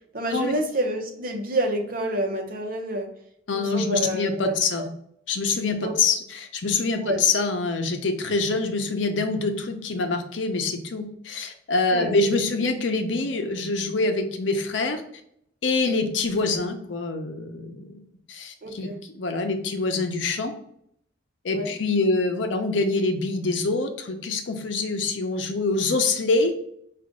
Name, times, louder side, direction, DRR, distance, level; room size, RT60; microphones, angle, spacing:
voice 1, 0.1-3.1 3.5-4.9 5.8-6.0 7.0-7.2 11.9-12.1 15.9-16.1 18.6-19.0 21.5-21.7, right 1 dB, 50° right, 3 dB, 0.8 m, -28 dB
voice 2, 3.5-4.9 5.3-15.0 15.6-18.0 18.3-20.5 21.4-26.5, left 3 dB, 90° left, 6 dB, 0.7 m, -25 dB
4.9 x 2.5 x 3.7 m, 0.73 s
head